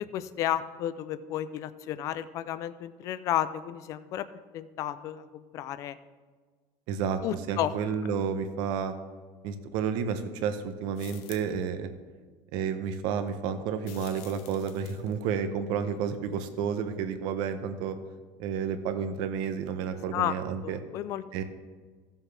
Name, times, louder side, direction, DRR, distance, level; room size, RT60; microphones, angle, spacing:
voice 1, 0.1-4.3 4.5-6.0 7.2-7.7 20.1-20.3 20.6-21.2, left 12 dB, 30° left, 14 dB, 0.4 m, -32 dB
voice 2, 6.9-7.2 7.5-8.9 9.4-11.9 12.5-18.0 18.4-20.8 21.3-21.4, right 7 dB, 50° right, 9 dB, 0.8 m, -31 dB
sound 1, 10.9-11.7 13.8-15.2, left 11 dB, 60° left, 0.8 m, -50 dB
15.5 x 7.3 x 3.4 m, 1.5 s
cardioid pair, 180°, 10 cm